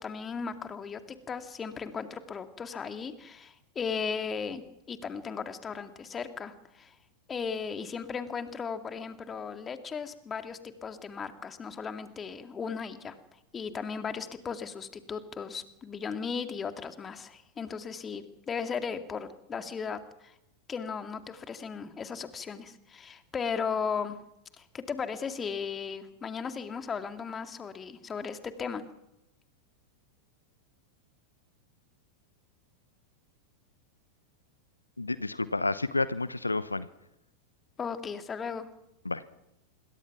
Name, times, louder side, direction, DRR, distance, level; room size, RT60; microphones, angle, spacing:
voice 1, 0.0-6.9 7.3-13.2 13.5-20.3 20.7-24.2 24.6-28.8 37.8-38.7, left 6 dB, 20° left, 8 dB, 2.2 m, -36 dB
voice 2, 35.0-36.9 39.0-39.2, left 3 dB, 80° left, 16 dB, 0.9 m, -30 dB
26.0 x 22.5 x 6.0 m, 0.86 s
figure-of-eight pair, 90°, 0 cm